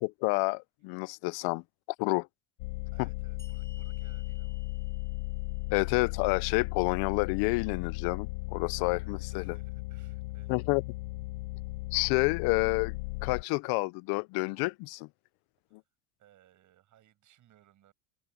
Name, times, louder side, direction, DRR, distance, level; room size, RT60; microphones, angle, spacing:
voice 1, 0.0-1.6 2.0-2.3 5.7-9.6 10.5-10.8 11.9-13.0 13.2-15.1, left 27 dB, 65° left, 0.7 m, -29 dB
sound 1, 2.6-13.4, left 22 dB, 85° left, 1.0 m, -36 dB
voice 2, 2.9-4.7 9.0-10.5 15.7-15.8 16.2-17.9, right 12 dB, 45° right, 7.4 m, -63 dB
sound 2, 3.4-6.8, left 2 dB, 5° left, 2.4 m, -60 dB
open air
supercardioid pair, 110°, 40 cm